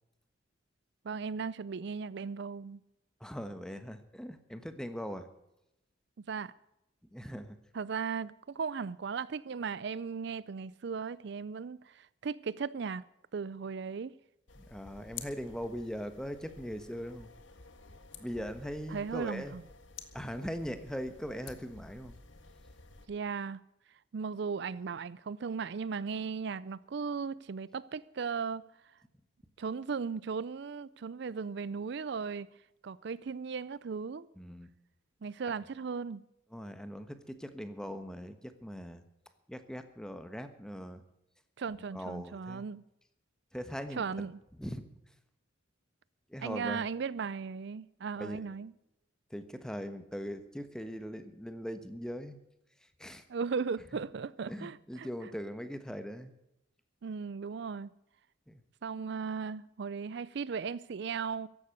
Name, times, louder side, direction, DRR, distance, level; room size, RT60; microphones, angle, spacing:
voice 1, 1.0-2.8 6.2-6.5 7.7-13.1 13.3-14.1 18.9-19.6 23.1-23.6 24.1-28.7 29.6-32.5 32.8-34.3 35.2-36.2 41.6-42.8 44.0-44.4 46.4-48.7 53.3-55.1 57.0-57.9 58.8-61.5, right 5 dB, 60° right, 0.4 m, -37 dB
voice 2, 3.2-5.3 7.1-7.6 14.6-17.3 18.1-19.6 20.1-22.2 34.4-34.7 36.5-39.0 39.5-41.0 41.9-42.7 43.5-44.3 44.6-44.8 46.3-46.8 48.2-48.4 49.3-52.4 53.0-53.2 54.5-56.3 58.5-58.6, equal, 5° left, 1.3 m, -40 dB
sound 1, 14.5-23.1, left 5 dB, 75° left, 1.8 m, -51 dB
15.0 x 11.5 x 6.6 m
head